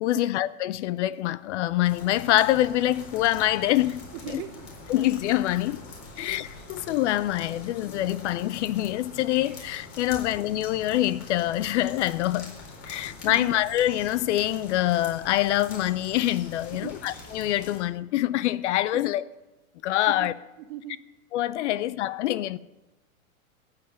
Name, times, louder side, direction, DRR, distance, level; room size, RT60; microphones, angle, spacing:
voice 1, 0.0-4.0 4.3-4.4 4.9-5.8 6.2-12.5 12.9-19.2 19.8-20.3 21.3-22.6, left 14 dB, 55° left, 0.5 m, -25 dB
sound 1, 1.8-17.8, left 3 dB, 40° left, 4.4 m, -44 dB
voice 2, 4.1-4.7 6.1-6.3 12.9-13.5 16.7-17.0 18.9-19.0 20.1-20.3 20.6-21.0 21.7-21.9, right 12 dB, 45° right, 0.9 m, -40 dB
14.5 x 5.7 x 8.8 m
hypercardioid pair, 120°, 43 cm